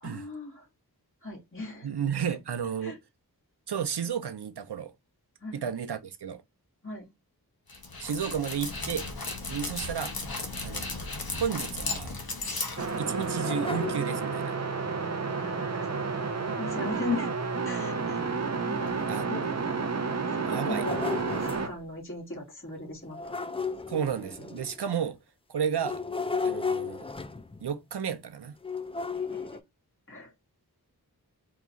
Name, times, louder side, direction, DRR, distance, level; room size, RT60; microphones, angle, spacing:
voice 1, 0.0-0.7 1.2-1.9 2.3-2.4 2.8-3.0 5.4-5.6 6.8-7.1 15.3-15.9 16.2-17.3 17.6-18.3 18.6-19.5 20.1-23.3 23.6-23.7 29.3-29.6 30.1-30.3, left 3 dB, 30° left, 1.4 m, -38 dB
voice 2, 1.8-3.0 3.7-4.9 5.5-6.4 8.0-9.1 9.5-10.1 10.6-10.9 11.4-12.1 13.0-14.6 19.1-19.3 20.5-20.9 23.9-25.2 25.5-26.0 26.4-27.1 27.6-28.5, right 7 dB, 85° right, 0.6 m, -32 dB
Dog, 7.7-13.5, left 3 dB, 65° left, 0.9 m, -35 dB
sound 1, 12.8-21.7, right 4 dB, 45° right, 0.6 m, -31 dB
sound 2, 13.1-14.6 16.8-16.9 17.4-17.5 18.2-18.3 18.9-19.0 20.4-21.8 23.1-24.9 25.8-27.7 28.6-29.6, left 4 dB, 15° left, 0.3 m, -34 dB
3.0 x 2.3 x 3.8 m
wide cardioid pair, 45°, 39 cm